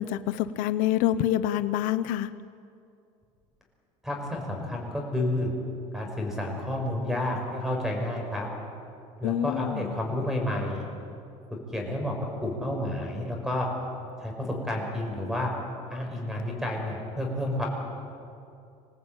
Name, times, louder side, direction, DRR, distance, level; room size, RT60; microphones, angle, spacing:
voice 1, 0.0-2.3 9.2-10.0, left 12 dB, 70° left, 11 dB, 0.7 m, -27 dB
voice 2, 4.0-5.5 5.9-8.5 9.2-10.9 11.7-12.1 12.4-13.7 14.2-15.5 15.9-17.6, left 1 dB, 5° right, 1 dB, 5.3 m, -30 dB
27.0 x 18.0 x 8.9 m, 2.5 s
cardioid pair, 150°, 14 cm